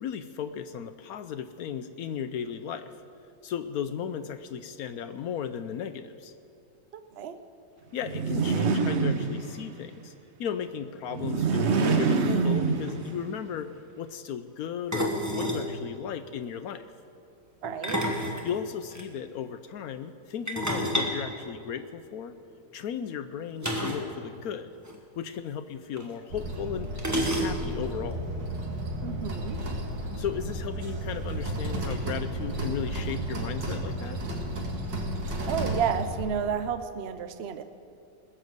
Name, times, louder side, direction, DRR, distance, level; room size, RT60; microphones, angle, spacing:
voice 1, 0.0-2.9 3.4-6.3 7.9-10.1 10.4-16.9 18.4-22.3 22.7-24.7 25.2-28.3 30.2-34.2, left 8 dB, 70° left, 10 dB, 0.9 m, -35 dB
voice 2, 6.9-7.4 17.6-18.0 29.0-29.6 35.5-37.6, right 7 dB, 70° right, 10 dB, 0.6 m, -31 dB
sound 1, 8.0-9.8 11.1-13.3, right 4 dB, 50° right, 0.9 m, -26 dB
sound 2, 12.6-12.7 12.9-13.1 14.9-15.7 17.6-19.1 20.5-22.1 23.6-24.1 24.4-24.5 24.8-25.0 26.0-26.1 27.0-27.8, equal, 10° right, 1.3 m, -30 dB
sound 3, 26.3-36.3, right 1 dB, 85° right, 2.4 m, -33 dB
20.0 x 6.8 x 7.9 m, 2.4 s
omnidirectional pair, 1.9 m